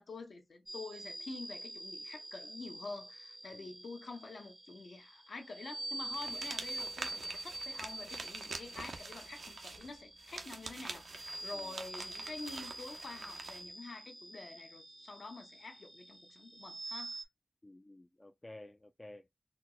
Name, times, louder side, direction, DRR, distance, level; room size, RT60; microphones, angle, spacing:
voice 1, 0.0-17.2, left 3 dB, 80° left, 0.9 m, -48 dB
sound 1, 0.7-17.2, right 2 dB, 20° right, 0.5 m, -46 dB
sound 2, 6.1-13.6, right 3 dB, 85° right, 0.6 m, -46 dB
voice 2, 17.6-19.3, left 1 dB, 25° left, 0.3 m, -53 dB
4.1 x 2.0 x 2.3 m
wide cardioid pair, 75°, 0 cm